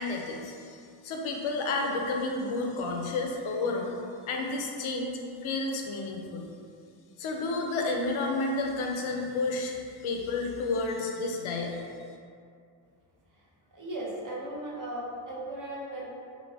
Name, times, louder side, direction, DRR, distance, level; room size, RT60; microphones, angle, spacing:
voice 1, 0.0-4.0 4.3-5.1 5.4-6.4 7.2-11.8, left 3 dB, 75° left, 1 dB, 0.6 m, -31 dB
voice 2, 13.7-16.1, right 1 dB, 40° right, -5 dB, 0.7 m, -37 dB
3.2 x 3.1 x 2.6 m, 2.3 s
wide cardioid pair, 145°, 49 cm